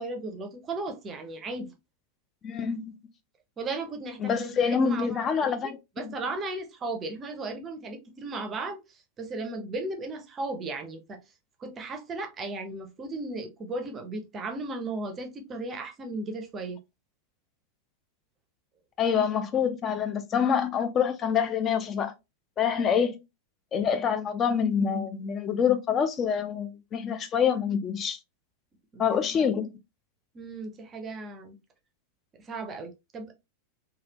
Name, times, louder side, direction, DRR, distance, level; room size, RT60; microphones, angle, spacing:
voice 1, 0.0-1.7 3.6-11.2 11.6-16.8 22.6-22.9 28.9-29.5 30.3-31.6 32.4-33.3, right 2 dB, 25° right, 0.6 m, -36 dB
voice 2, 2.4-3.0 4.2-5.8 6.0-6.1 19.0-22.1 22.6-23.2 23.7-28.2 29.0-29.7, left 7 dB, 25° left, 0.4 m, -26 dB
3.2 x 2.3 x 2.8 m
figure-of-eight pair, 90°, 0 cm